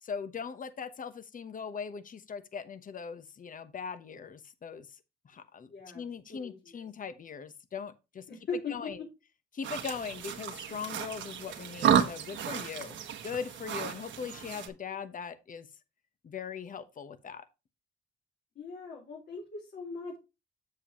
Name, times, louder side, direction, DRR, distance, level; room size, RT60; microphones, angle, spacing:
voice 1, 0.0-5.0 5.2-5.7 5.9-8.2 8.7-9.0 9.5-13.0 13.2-15.7 16.2-17.5, left 6 dB, 40° left, 1.1 m, -40 dB
voice 2, 5.7-6.0 6.3-6.5 8.3-9.1 14.9-15.0 18.6-20.2, left 4 dB, 55° left, 3.8 m, -39 dB
sound 1, 9.6-14.7, right 8 dB, 70° right, 1.4 m, -32 dB
7.9 x 7.1 x 2.9 m
cardioid pair, 90°, 20 cm